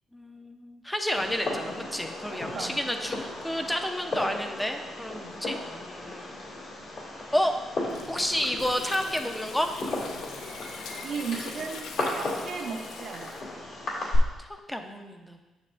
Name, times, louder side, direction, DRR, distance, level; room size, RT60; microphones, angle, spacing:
voice 1, 0.1-6.4 7.3-7.5 7.8-9.7 14.4-15.4, equal, 5° left, 5 dB, 0.7 m, -30 dB
Fireworks, 1.2-14.2, left 2 dB, 60° left, 2.3 m, -36 dB
voice 2, 2.3-2.8 11.0-13.3, right 5 dB, 65° right, -2 dB, 0.7 m, -36 dB
Gurgling, 7.9-13.4, left 5 dB, 80° left, 0.6 m, -42 dB
8.9 x 6.5 x 2.5 m, 1.1 s
cardioid pair, 90°, 0 cm